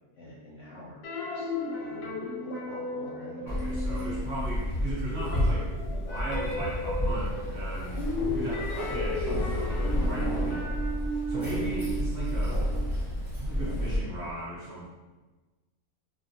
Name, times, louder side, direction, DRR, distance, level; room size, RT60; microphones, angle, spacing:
voice 1, 0.1-1.0 1.3-2.1 2.4-3.5 9.7-10.3, left 2 dB, 65° left, -8 dB, 0.7 m, -45 dB
sound 1, 1.0-4.8 5.1-12.9, left 1 dB, 85° left, 1.1 m, -35 dB
voice 2, 3.4-8.0 8.3-10.6 11.1-12.6 13.3-14.9, right 1 dB, 50° right, -8 dB, 0.9 m, -37 dB
Keys jangling, 3.5-14.0, equal, ahead, 0.5 m, -31 dB
2.6 x 2.1 x 2.6 m, 1.2 s
omnidirectional pair, 1.6 m